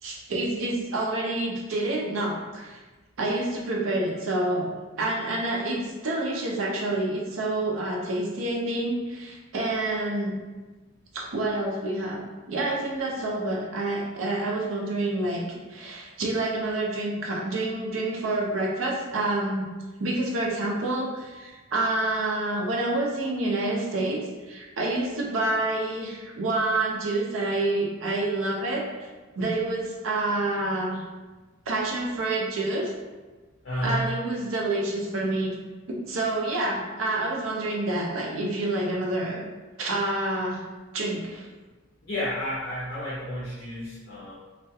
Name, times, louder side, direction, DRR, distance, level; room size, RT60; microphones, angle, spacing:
voice 1, 0.0-2.8 3.2-4.7 5.0-10.4 11.1-12.2 12.5-19.7 20.0-29.1 29.4-31.0 31.7-32.9 33.8-35.6 35.9-39.4 39.8-40.7 40.9-41.5, right 2 dB, 85° right, -2 dB, 0.5 m, -28 dB
voice 2, 33.6-34.2 42.0-44.3, equal, 55° left, -8 dB, 0.5 m, -31 dB
2.3 x 2.1 x 2.7 m, 1.2 s
head